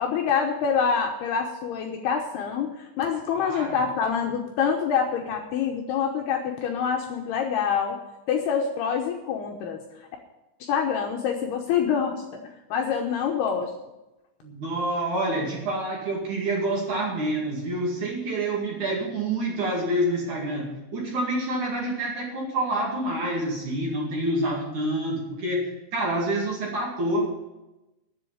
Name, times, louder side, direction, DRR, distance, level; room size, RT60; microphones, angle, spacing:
voice 1, 0.0-8.0 8.3-9.8 10.6-12.1 12.7-13.7, left 7 dB, 75° left, 2 dB, 2.6 m, -26 dB
voice 2, 3.3-3.8 14.4-27.4, right 1 dB, 50° right, -2 dB, 3.1 m, -27 dB
10.5 x 7.9 x 8.9 m, 0.98 s
omnidirectional pair, 5.4 m